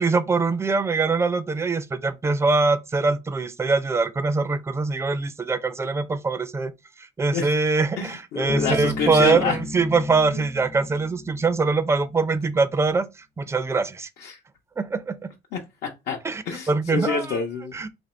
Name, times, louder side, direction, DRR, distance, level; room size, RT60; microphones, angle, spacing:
voice 1, 0.0-6.7 7.0-13.1 13.4-14.1 14.8-15.3 16.2-17.4 17.7-17.9, right 4 dB, 15° right, 0.4 m, -23 dB
voice 2, 8.0-9.6 10.3-10.4 14.2-14.4 15.5-16.2 16.5-17.8, left 5 dB, 75° left, 0.7 m, -27 dB
Bass guitar, 8.5-12.0, left 2 dB, 35° left, 0.5 m, -34 dB
3.0 x 2.6 x 4.2 m
cardioid pair, 110°, 17 cm